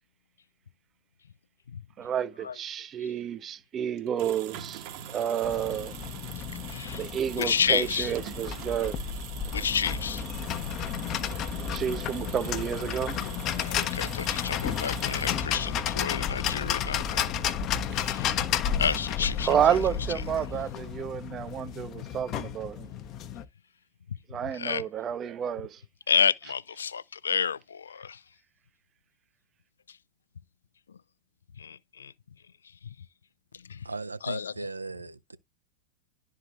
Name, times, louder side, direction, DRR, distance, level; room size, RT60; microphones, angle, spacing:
voice 1, 2.0-5.9 7.0-9.0 11.7-13.2 19.5-22.9 24.3-25.8, right 9 dB, 25° right, 0.6 m, -30 dB
sound 1, 4.0-15.8, right 11 dB, 45° right, 1.0 m, -44 dB
sound 2, 5.4-23.4, left 8 dB, 35° left, 0.7 m, -32 dB
voice 2, 6.7-7.1 7.3-8.1 9.5-10.3 13.6-18.5 18.8-19.8 24.1-24.9 26.1-28.2 29.9-30.0 30.9-31.0 31.6-32.1 32.6-33.0 33.5-33.9 34.2-34.5, left 7 dB, 70° left, 0.4 m, -31 dB
voice 3, 33.8-35.4, right 3 dB, 80° right, 0.6 m, -37 dB
11.5 x 4.7 x 2.4 m
figure-of-eight pair, 90°, 0 cm